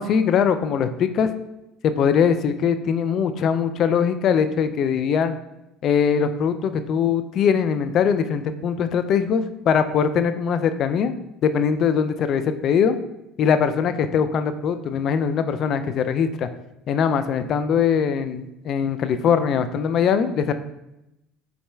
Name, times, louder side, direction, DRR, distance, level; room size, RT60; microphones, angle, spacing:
voice 1, 0.0-1.3 1.8-5.3 5.8-11.1 11.4-13.0 13.4-16.5 16.9-20.5, left 7 dB, 50° left, 10 dB, 0.4 m, -21 dB
5.6 x 4.1 x 2.3 m, 0.90 s
supercardioid pair, 95°, 0 cm